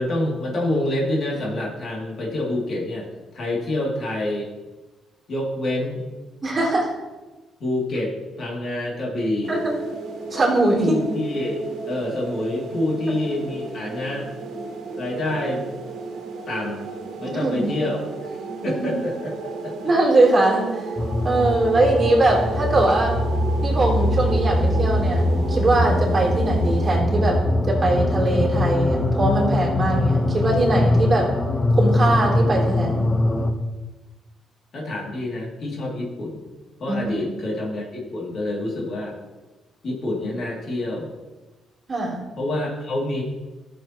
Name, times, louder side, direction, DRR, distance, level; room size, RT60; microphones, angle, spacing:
voice 1, 0.0-3.1 3.3-4.5 5.3-6.0 7.6-9.6 10.8-11.6 11.8-14.3 15.0-15.7 16.5-16.9 17.2-19.8 34.7-36.4 36.8-39.2 39.8-41.1 42.4-43.2, left 1 dB, 55° left, -2 dB, 2.6 m, -27 dB
voice 2, 6.4-6.9 9.5-9.7 10.3-11.0 17.2-17.7 18.7-18.9 19.8-20.9 21.2-23.2 23.6-27.4 27.7-31.3 31.8-33.0 36.9-37.1 41.9-42.2, right 2 dB, 30° right, -3 dB, 3.5 m, -21 dB
sound 1, 9.4-27.0, right 4 dB, 75° right, 1.4 m, -34 dB
sound 2, 21.0-33.5, left 1 dB, 25° left, 0.9 m, -22 dB
13.0 x 7.2 x 3.0 m, 1.2 s
cardioid pair, 90°, 0 cm